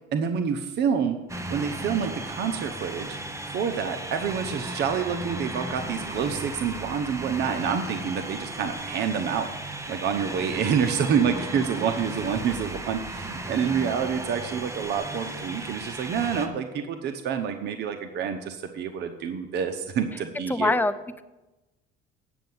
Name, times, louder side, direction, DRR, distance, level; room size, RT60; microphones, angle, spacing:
voice 1, 0.1-1.2 1.5-3.2 3.5-20.8, right 7 dB, 55° right, 6 dB, 1.0 m, -28 dB
sound 1, 1.3-16.5, right 1 dB, 15° right, 1.0 m, -35 dB
voice 2, 20.5-21.2, left 2 dB, 10° left, 11 dB, 0.5 m, -24 dB
9.1 x 6.7 x 7.9 m, 1.0 s
cardioid pair, 115°, 21 cm